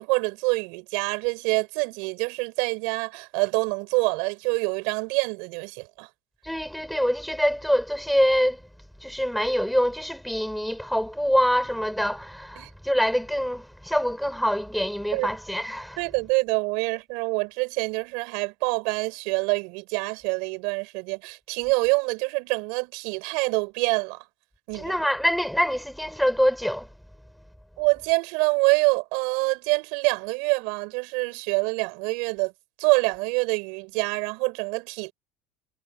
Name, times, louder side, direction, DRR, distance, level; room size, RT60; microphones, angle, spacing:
voice 1, 0.0-6.1 12.6-12.7 15.1-15.3 16.0-24.2 24.7-24.9 27.8-32.5 32.8-35.1, right 32 dB, 70° right, 5.7 m, -26 dB
voice 2, 6.4-8.6 9.0-16.0 24.7-26.9, equal, ahead, 3.8 m, -25 dB
supercardioid pair, 140°, 0 cm